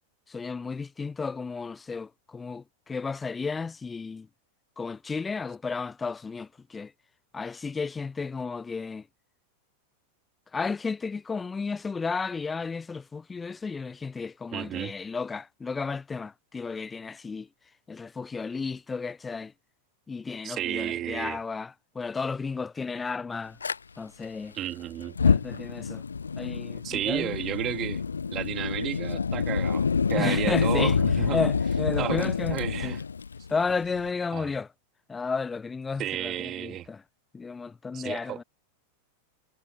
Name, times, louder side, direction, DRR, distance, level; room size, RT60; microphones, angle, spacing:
voice 1, 0.3-4.3 4.8-6.9 7.3-9.1 10.5-17.5 17.9-19.5 20.1-23.6 24.0-24.5 25.2-26.0 26.4-27.4 30.2-33.0 33.5-34.7 35.1-37.0 37.3-38.4, left 4 dB, 15° left, 0.6 m, -33 dB
voice 2, 14.5-14.9 20.4-21.4 24.5-25.2 26.8-28.0 28.3-31.5 32.0-33.0 34.3-34.5 36.0-36.9 37.9-38.4, right 12 dB, 30° right, 2.4 m, -32 dB
Fire, 23.6-23.8 25.0-34.1, left 5 dB, 75° left, 0.3 m, -27 dB
figure-of-eight pair, 90°, 0 cm